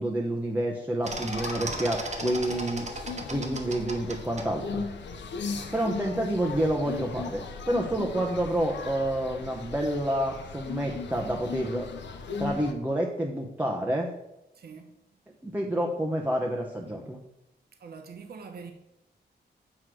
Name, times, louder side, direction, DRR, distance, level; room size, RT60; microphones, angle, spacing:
voice 1, 0.0-2.9 3.3-4.8 5.7-11.9 12.4-14.1 15.4-17.2, right 1 dB, 10° right, 0.8 m, -28 dB
sound 1, 1.0-12.7, left 5 dB, 85° left, 0.8 m, -37 dB
sound 2, 1.0-4.5, right 2 dB, 40° right, 1.1 m, -36 dB
voice 2, 5.2-5.9 14.5-14.9 17.8-18.7, right 5 dB, 60° right, 0.9 m, -45 dB
7.7 x 3.2 x 6.1 m
cardioid pair, 90°, 18 cm